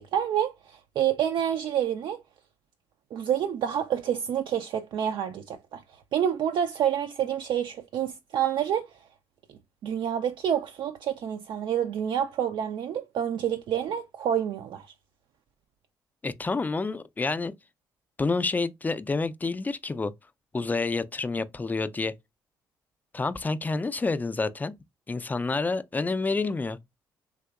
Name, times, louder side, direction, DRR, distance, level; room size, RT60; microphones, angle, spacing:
voice 1, 0.0-2.2 3.1-5.8 6.1-8.9 9.8-14.9, right 9 dB, 60° right, 0.4 m, -28 dB
voice 2, 16.2-17.5 18.2-20.1 20.5-22.1 23.1-24.7 25.1-26.8, left 3 dB, 20° left, 0.4 m, -28 dB
3.4 x 2.8 x 2.3 m
hypercardioid pair, 55°, 9 cm